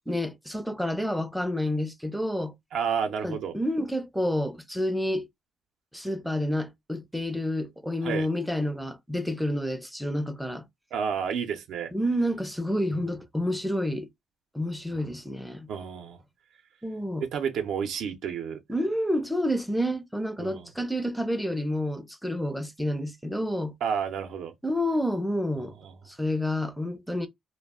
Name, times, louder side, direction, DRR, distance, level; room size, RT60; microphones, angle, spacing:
voice 1, 0.1-2.5 3.2-5.3 5.9-10.6 11.9-14.1 14.5-15.7 16.8-17.2 18.7-23.7 24.6-25.7 26.1-27.3, left 1 dB, ahead, 0.4 m, -29 dB
voice 2, 2.7-3.5 8.0-8.3 10.9-11.9 15.7-16.2 17.2-18.6 20.4-20.7 23.8-24.5 25.8-25.9, right 7 dB, 80° right, 0.5 m, -30 dB
2.3 x 2.0 x 3.4 m
cardioid pair, 90°, 0 cm